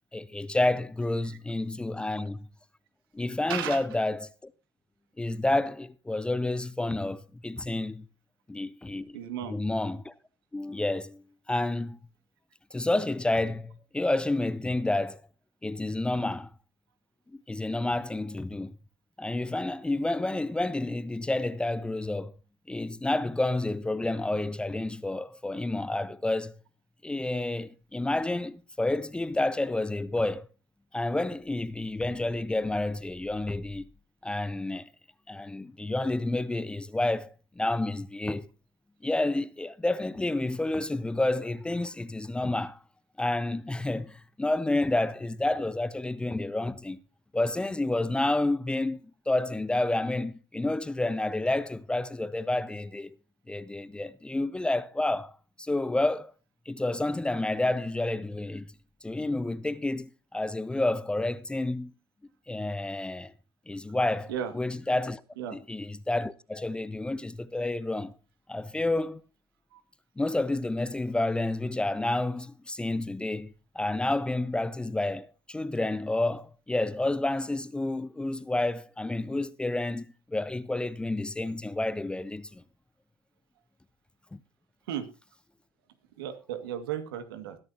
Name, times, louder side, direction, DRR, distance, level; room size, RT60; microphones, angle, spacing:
voice 1, 0.1-2.4 3.1-4.3 5.2-8.0 8.5-9.2 9.5-10.1 10.5-12.0 12.7-15.2 15.6-16.5 17.5-18.7 19.2-22.3 22.7-26.5 27.0-30.5 30.9-33.8 34.2-34.9 35.3-38.5 39.0-42.8 43.2-47.0 47.3-49.0 49.3-53.1 53.5-55.3 55.6-56.3 56.7-58.7 59.0-61.9 62.5-63.3 63.7-65.2 65.5-68.1 68.5-69.2 70.2-82.6 84.3-84.4, left 2 dB, 10° left, 0.5 m, -29 dB
voice 2, 3.5-3.8 9.1-9.6 64.3-64.5 65.4-65.6 69.7-69.8 84.9-85.1 86.2-87.6, right 10 dB, 80° right, 2.1 m, -34 dB
21.0 x 10.5 x 2.9 m
supercardioid pair, 105°, 12 cm